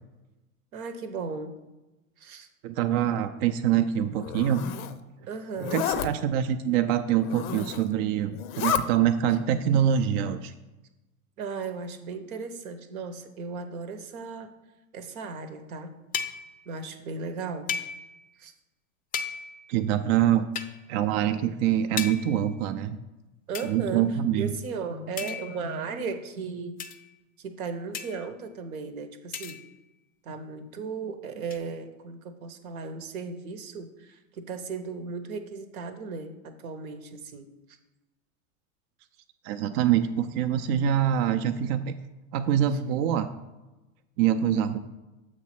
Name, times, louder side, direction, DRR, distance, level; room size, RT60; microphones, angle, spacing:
voice 1, 0.7-1.5 2.2-2.5 5.3-5.9 11.4-14.5 14.9-16.0 16.7-17.7 18.4-18.5 23.5-26.9 27.4-29.6 30.2-37.5, right 5 dB, 80° right, 8 dB, 0.9 m, -36 dB
voice 2, 2.6-4.7 5.6-10.5 19.7-20.5 20.9-23.0 23.6-24.5 39.4-41.9 42.3-43.3 44.2-44.8, right 10 dB, 50° right, 8 dB, 0.5 m, -25 dB
Zipper (clothing), 4.2-4.9 5.6-6.1 7.2-7.9 8.3-8.8, left 9 dB, 75° left, 0.6 m, -30 dB
sound 1, 16.1-16.6 17.7-18.3 19.1-19.7 20.6-20.8 22.0-22.5 23.5-23.7 25.2-25.7 26.8-27.1 27.9-28.4 29.3-29.8 31.5-31.6, left 7 dB, 20° left, 0.4 m, -35 dB
7.2 x 3.2 x 5.8 m, 1.1 s
hypercardioid pair, 95°, 42 cm